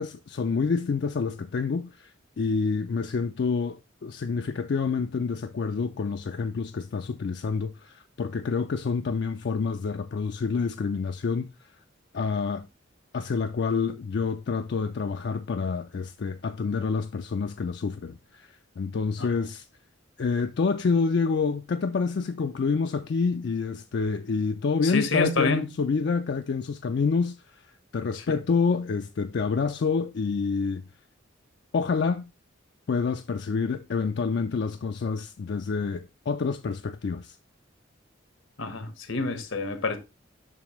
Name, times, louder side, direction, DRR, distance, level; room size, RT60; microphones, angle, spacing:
voice 1, 0.0-2.1 2.4-11.5 12.1-12.7 13.1-19.6 20.2-27.6 27.9-30.8 31.7-32.3 32.9-37.4, left 5 dB, 55° left, 0.4 m, -28 dB
voice 2, 24.8-25.7 28.1-28.2 38.6-40.0, left 3 dB, 85° left, 1.2 m, -28 dB
7.3 x 5.8 x 3.0 m
head